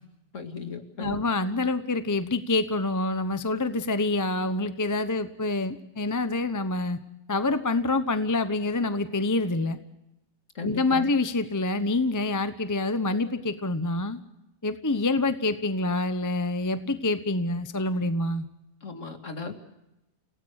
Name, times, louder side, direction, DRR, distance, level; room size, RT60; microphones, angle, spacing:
voice 1, 0.3-1.2 10.6-11.1 18.8-19.5, left 5 dB, 50° left, 5 dB, 2.5 m, -36 dB
voice 2, 1.0-7.0 7.3-9.8 10.6-14.2 14.6-18.4, left 2 dB, 15° left, 10 dB, 0.7 m, -26 dB
29.5 x 17.5 x 6.5 m, 0.90 s
omnidirectional pair, 1.8 m